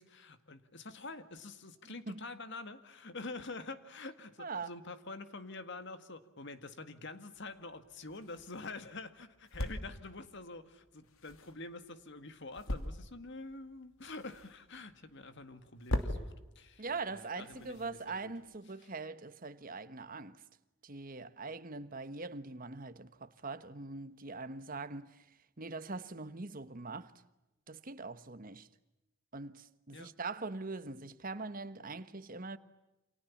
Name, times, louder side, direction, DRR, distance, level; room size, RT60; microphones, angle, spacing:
voice 1, 0.0-18.3 18.7-18.9 29.9-30.1, left 3 dB, 55° left, 2.0 m, -47 dB
voice 2, 4.4-4.7 16.8-20.4 20.8-25.2 25.6-27.1 27.7-28.7 29.3-32.6, right 3 dB, 40° right, 1.3 m, -42 dB
sound 1, 7.3-18.5, left 1 dB, 85° left, 2.9 m, -43 dB
29.5 x 27.5 x 7.3 m
head